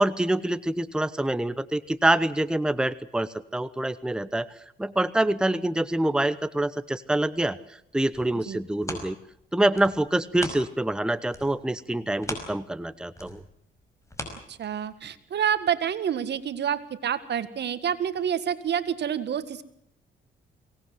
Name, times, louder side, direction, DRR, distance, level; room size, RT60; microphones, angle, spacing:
voice 1, 0.0-9.2 9.5-13.4, right 1 dB, 5° right, 14 dB, 0.9 m, -26 dB
sound 1, 7.8-11.0 11.3-15.1 15.6-15.7, left 1 dB, 15° left, 5.4 m, -40 dB
voice 2, 14.5-19.6, right 9 dB, 60° right, 13 dB, 1.8 m, -28 dB
23.5 x 18.5 x 7.8 m, 0.72 s
cardioid pair, 90°, 20 cm